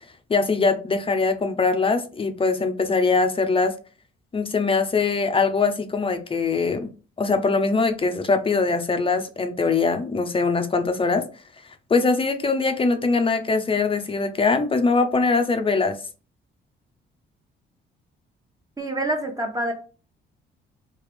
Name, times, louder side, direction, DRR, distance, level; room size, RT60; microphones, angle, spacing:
voice 1, 0.3-3.7 4.3-6.9 7.2-11.2 11.9-16.0, left 4 dB, 25° left, 0.6 m, -22 dB
voice 2, 18.8-19.7, right 1 dB, 20° right, 1.0 m, -26 dB
3.2 x 2.9 x 3.4 m
cardioid pair, 90°, 20 cm